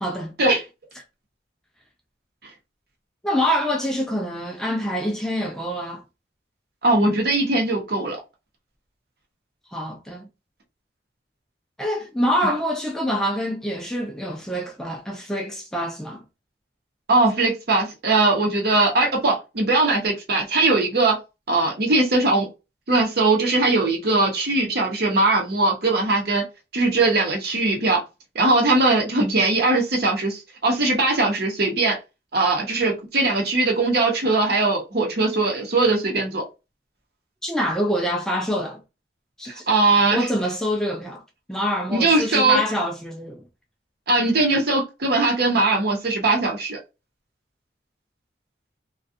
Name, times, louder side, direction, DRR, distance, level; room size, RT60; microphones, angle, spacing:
voice 1, 0.0-0.3 3.2-6.0 9.7-10.3 11.8-16.2 37.4-38.8 39.4-39.7 40.1-41.2 41.5-43.4, equal, 5° left, 0.4 m, -25 dB
voice 2, 6.8-8.2 12.4-12.5 17.1-21.2 21.5-22.5 22.9-26.4 26.7-28.0 28.3-32.0 32.3-36.4 39.7-40.3 41.9-42.6 44.1-46.8, right 2 dB, 60° right, 0.8 m, -20 dB
2.4 x 2.3 x 2.5 m
head